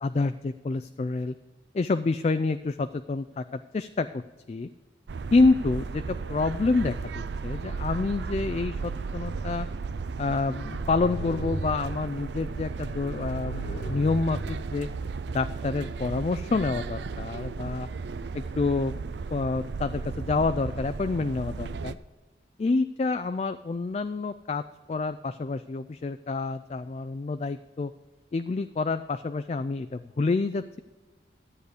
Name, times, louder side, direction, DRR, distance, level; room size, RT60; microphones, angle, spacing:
voice 1, 0.0-1.3 1.7-4.2 4.5-4.7 5.3-9.7 10.2-14.9 15.3-17.9 18.3-19.0 19.3-22.0 22.6-24.6 24.9-27.9 28.3-30.8, left 3 dB, 35° left, 10 dB, 0.3 m, -28 dB
sound 1, 5.1-21.9, right 4 dB, 70° right, 0.4 m, -35 dB
sound 2, 9.2-10.0 10.5-12.1 12.7-14.6, right 1 dB, 60° left, 1.4 m, -38 dB
12.5 x 8.2 x 4.9 m, 1.2 s
head